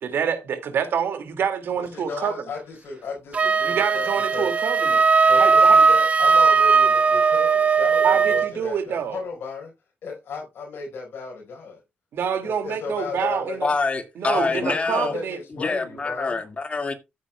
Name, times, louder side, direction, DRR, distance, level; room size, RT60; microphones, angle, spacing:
voice 1, 0.0-2.3 3.6-5.1 5.3-5.8 8.0-9.2 12.1-13.7 14.2-15.4, right 7 dB, 75° right, 2.3 m, -27 dB
voice 2, 1.7-4.5 5.2-9.7 10.0-11.8 12.4-13.6 14.3-16.4, left 4 dB, 75° left, 4.7 m, -35 dB
Wind instrument woodwind instrument, 3.3-8.5, right 5 dB, 35° right, 0.5 m, -18 dB
voice 3, 13.6-15.1 15.5-16.9, left 3 dB, 30° left, 2.0 m, -25 dB
14.5 x 9.0 x 2.3 m
cardioid pair, 115°, 4 cm